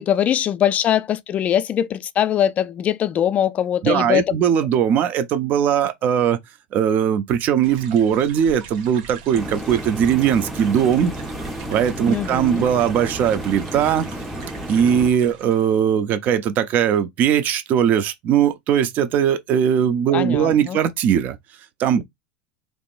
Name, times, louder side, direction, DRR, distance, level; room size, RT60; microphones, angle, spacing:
voice 1, 0.0-4.3 12.1-12.7 20.1-20.8, left 10 dB, 35° left, 0.4 m, -21 dB
voice 2, 3.8-6.4 6.7-11.1 11.7-14.1 14.7-21.4 21.8-22.0, right 8 dB, 45° right, 0.6 m, -19 dB
sound 1, 7.6-15.8, right 6 dB, 65° right, 1.3 m, -42 dB
sound 2, 9.3-15.1, right 1 dB, ahead, 0.6 m, -32 dB
3.5 x 3.1 x 2.5 m
hypercardioid pair, 110°, 4 cm